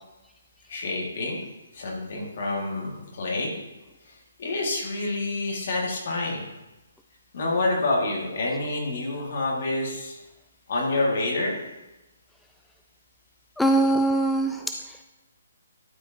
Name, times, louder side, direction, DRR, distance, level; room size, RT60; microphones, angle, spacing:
voice 1, 0.7-1.4 1.7-3.5 4.4-6.4 7.3-10.2 10.7-11.5, left 2 dB, 55° left, -2 dB, 2.2 m, -27 dB
voice 2, 13.6-15.0, right 2 dB, 5° left, 3 dB, 0.3 m, -23 dB
12.0 x 4.8 x 2.9 m, 1.1 s
hypercardioid pair, 145°, 0 cm